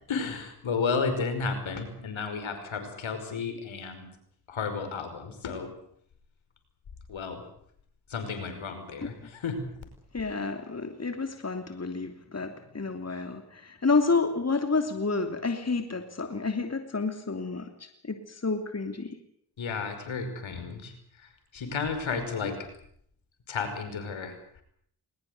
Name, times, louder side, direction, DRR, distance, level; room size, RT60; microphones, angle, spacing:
voice 1, 0.1-4.1 4.5-5.7 7.1-7.4 8.1-9.6 19.6-22.6 23.5-24.4, left 5 dB, 70° left, 7 dB, 5.4 m, -32 dB
voice 2, 10.1-19.2, left 4 dB, 30° left, 6 dB, 3.0 m, -30 dB
21.5 x 20.0 x 8.1 m, 0.67 s
supercardioid pair, 40°, 49 cm